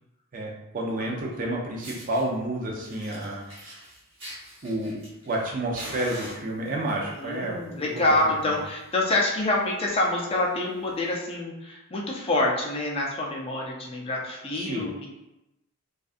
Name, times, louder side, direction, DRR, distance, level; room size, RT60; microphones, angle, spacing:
voice 1, 0.3-3.9 4.6-7.6 8.1-8.2 14.5-14.9, right 1 dB, 40° right, -2 dB, 0.5 m, -30 dB
Fire, 1.3-1.4 1.8-2.2 2.8-5.4 5.7-6.9 7.7-8.0 8.3-8.4 8.8-8.9 9.1-9.4 9.9-10.0 10.9-11.0, equal, 55° right, 1.0 m, -43 dB
voice 2, 7.1-15.1, left 2 dB, 25° left, -2 dB, 0.4 m, -26 dB
2.6 x 2.3 x 2.4 m, 0.93 s
head